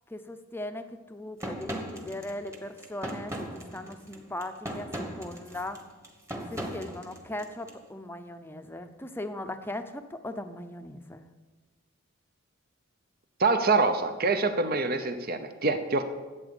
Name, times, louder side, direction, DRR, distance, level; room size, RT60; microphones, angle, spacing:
voice 1, 0.1-4.9 5.2-5.8 6.5-11.3, left 1 dB, 10° left, 7 dB, 0.7 m, -39 dB
sound 1, 1.4-7.7, right 1 dB, 15° right, 1.3 m, -38 dB
voice 2, 13.4-16.0, right 3 dB, 45° right, 8 dB, 0.8 m, -25 dB
12.0 x 8.5 x 7.1 m, 1.3 s
head